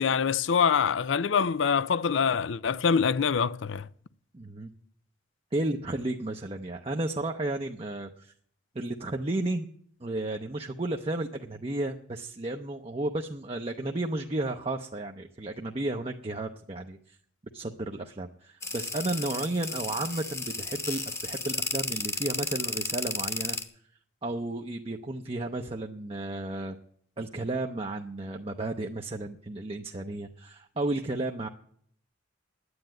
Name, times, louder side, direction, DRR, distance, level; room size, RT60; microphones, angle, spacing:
voice 1, 0.0-3.9, left 6 dB, 80° left, 0.5 m, -25 dB
voice 2, 4.3-4.7 5.5-8.3 8.7-9.7 10.0-17.2 17.5-23.6 24.2-26.8 27.2-31.5, right 2 dB, 30° right, 0.7 m, -33 dB
sound 1, 18.6-23.6, left 3 dB, 15° left, 1.0 m, -33 dB
10.0 x 9.7 x 9.1 m
head